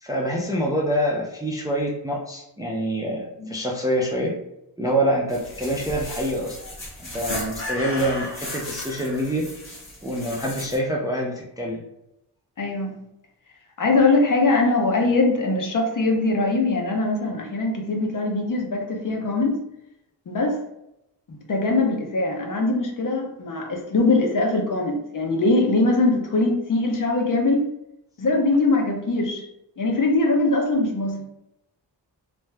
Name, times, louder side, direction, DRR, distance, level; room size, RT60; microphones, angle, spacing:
voice 1, 0.0-4.3 4.8-6.6 7.0-9.5 10.0-11.8, equal, 10° right, -2 dB, 0.3 m, -26 dB
sound 1, 5.3-10.8, left 1 dB, 30° left, 1.2 m, -35 dB
voice 2, 12.6-13.0 13.8-19.6 20.3-20.6 21.3-27.6 28.2-29.4 29.8-31.3, left 2 dB, 45° left, 2 dB, 0.6 m, -22 dB
2.6 x 2.2 x 3.2 m, 0.84 s
wide cardioid pair, 125°, 44 cm